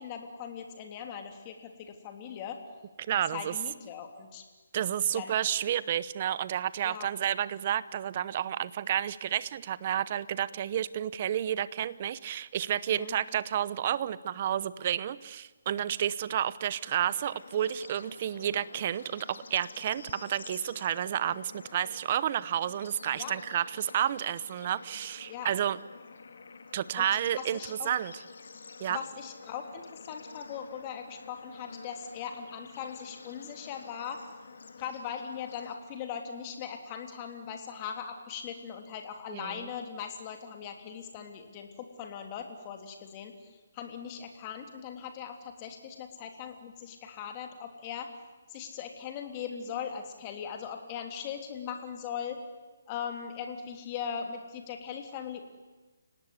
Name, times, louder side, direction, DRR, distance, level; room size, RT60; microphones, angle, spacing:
voice 1, 0.0-2.6 3.3-4.4 5.1-5.3 6.8-7.1 12.9-13.2 23.1-23.3 25.3-25.5 27.0-27.1 27.3-27.9 28.9-34.2 34.8-48.1 48.5-52.4 52.9-55.4, left 7 dB, 25° left, 5 dB, 3.2 m, -40 dB
voice 2, 3.1-3.5 4.7-25.8 26.7-28.1 28.8-29.0 39.3-39.7, right 10 dB, 35° right, 18 dB, 0.9 m, -31 dB
Bird / Insect / Frog, 16.8-35.7, left 4 dB, 70° left, 2.7 m, -49 dB
30.0 x 18.0 x 9.8 m, 1.3 s
hypercardioid pair, 165°, 0 cm